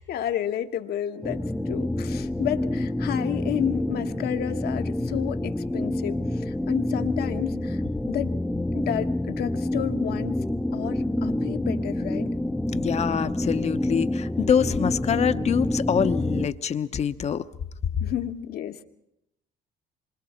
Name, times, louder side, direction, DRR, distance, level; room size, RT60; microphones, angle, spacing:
voice 1, 0.0-8.3 8.7-10.4 10.7-12.3 18.0-18.8, left 10 dB, 70° left, 7 dB, 1.4 m, -31 dB
sound 1, 1.2-16.5, left 1 dB, ahead, 0.8 m, -27 dB
voice 2, 12.7-17.4, left 7 dB, 40° left, 10 dB, 1.0 m, -25 dB
27.0 x 24.5 x 4.4 m, 0.79 s
cardioid pair, 110°, 17 cm